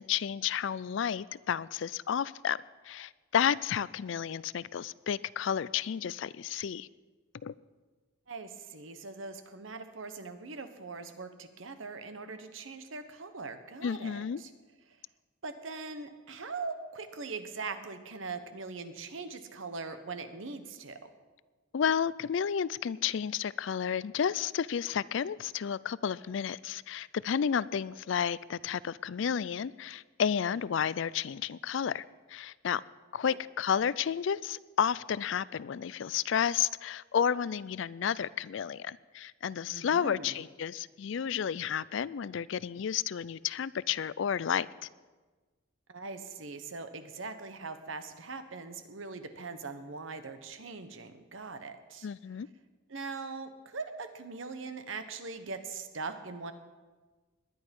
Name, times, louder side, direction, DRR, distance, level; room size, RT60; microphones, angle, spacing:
voice 1, 0.0-2.6 2.8-6.9 7.4-7.5 13.8-14.4 21.7-32.8 33.1-44.9 52.0-52.5, left 8 dB, 65° left, 20 dB, 0.4 m, -31 dB
voice 2, 8.3-14.5 15.4-21.1 33.2-33.4 39.7-40.4 45.9-52.1 52.9-56.5, right 4 dB, 75° right, 9 dB, 1.2 m, -41 dB
19.5 x 10.5 x 5.4 m, 1.3 s
head